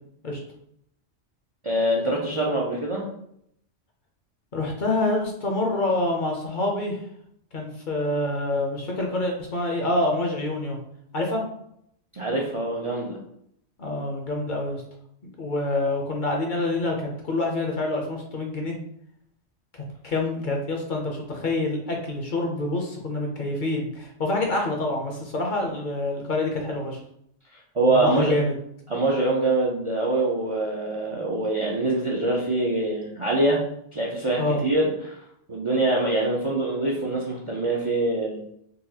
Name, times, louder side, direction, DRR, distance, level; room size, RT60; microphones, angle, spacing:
voice 1, 1.6-3.1 12.1-13.2 27.7-28.3 28.9-33.6 33.9-35.2 35.5-38.4, right 2 dB, 45° right, -3 dB, 0.4 m, -24 dB
voice 2, 4.5-7.0 7.5-10.8 11.1-11.4 13.8-14.8 15.4-18.8 20.0-27.0 27.9-28.5 34.4-34.6, left 2 dB, 50° left, 1 dB, 0.7 m, -26 dB
4.0 x 2.3 x 2.7 m, 0.72 s
omnidirectional pair, 1.2 m